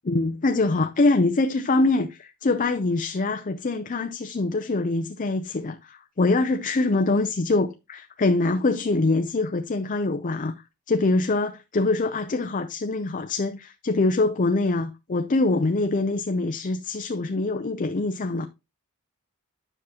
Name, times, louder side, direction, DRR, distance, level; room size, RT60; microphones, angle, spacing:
voice 1, 0.0-10.6 10.9-18.5, left 2 dB, 35° left, 0.5 m, -24 dB
9.8 x 6.2 x 2.9 m
head